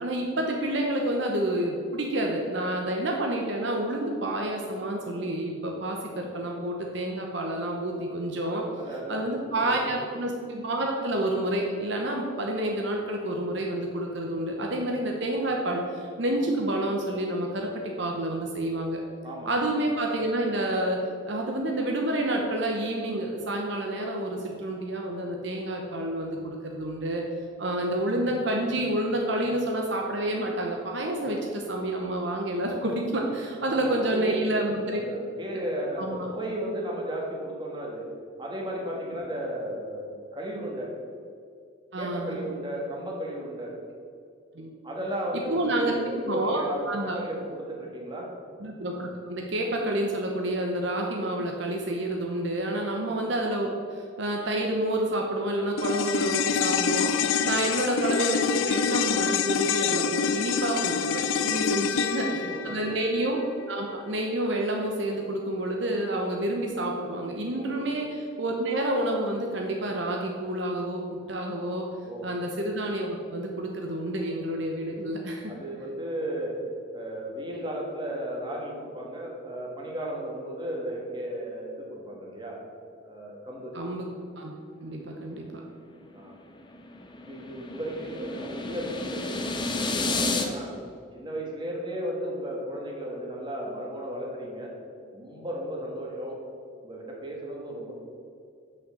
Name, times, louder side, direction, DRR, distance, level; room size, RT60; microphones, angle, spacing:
voice 1, 0.0-8.6 9.1-19.0 19.5-27.2 27.6-35.0 36.0-36.3 41.9-42.4 44.5-44.7 45.5-47.2 48.6-63.4 63.7-71.9 72.2-75.5 83.7-84.1 84.4-84.5 84.8-85.6, right 1 dB, 60° right, 1 dB, 0.9 m, -29 dB
voice 2, 8.8-9.9 19.2-19.5 33.7-38.1 38.4-40.9 42.0-43.7 44.8-48.3 57.4-57.7 61.5-63.0 67.5-67.8 72.0-72.3 75.5-76.6 76.9-82.6 83.0-83.7 86.1-86.4 87.2-90.8 91.1-94.7 95.1-96.4 96.8-97.9, right 1 dB, 25° right, -2 dB, 1.5 m, -35 dB
sound 1, 55.8-64.3 64.5-64.6, left 7 dB, 80° left, 0.4 m, -27 dB
sound 2, 86.2-90.5, left 3 dB, 25° left, 0.6 m, -31 dB
6.3 x 5.6 x 6.8 m, 2.3 s
head